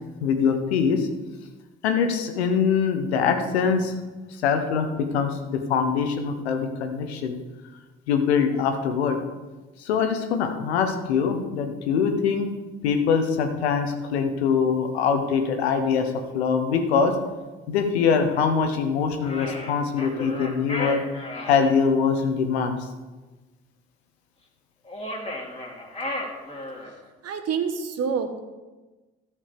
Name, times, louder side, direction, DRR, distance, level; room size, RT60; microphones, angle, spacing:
voice 1, 0.2-1.1 1.8-3.9 4.4-7.4 8.1-9.2 9.8-12.5 12.8-17.1 17.7-21.0 21.5-22.8, left 6 dB, 85° left, 6 dB, 1.2 m, -23 dB
sound 1, 19.2-21.7 24.9-27.0, left 1 dB, 20° left, 2.8 m, -34 dB
voice 2, 27.2-28.4, right 6 dB, 50° right, 8 dB, 1.4 m, -27 dB
13.0 x 5.2 x 6.9 m, 1.2 s
hypercardioid pair, 50°, 31 cm